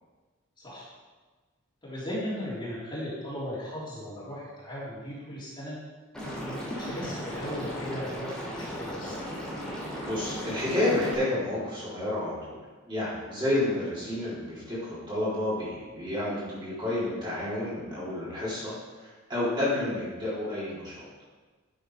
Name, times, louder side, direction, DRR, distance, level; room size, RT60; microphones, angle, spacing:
voice 1, 1.8-5.8 6.4-9.2, left 1 dB, 20° left, -9 dB, 3.7 m, -37 dB
Liquid, 6.1-11.1, equal, 5° left, 3.5 m, -36 dB
voice 2, 10.0-12.6 12.9-18.7 19.0-21.0, left 1 dB, 20° right, -9 dB, 4.1 m, -30 dB
11.0 x 7.9 x 5.0 m, 1.3 s
head